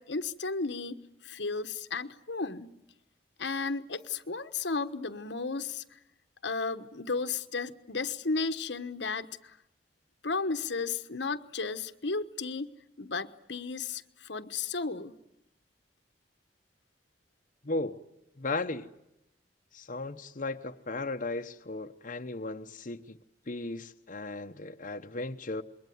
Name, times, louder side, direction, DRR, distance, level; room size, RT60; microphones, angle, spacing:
voice 1, 0.0-2.7 3.4-6.0 6.4-9.6 10.2-12.7 13.0-15.2, left 4 dB, 75° left, 1.3 m, -34 dB
voice 2, 17.6-18.0 18.4-18.9 19.7-23.2 23.5-25.6, left 2 dB, 45° left, 1.0 m, -36 dB
27.5 x 22.5 x 9.4 m
head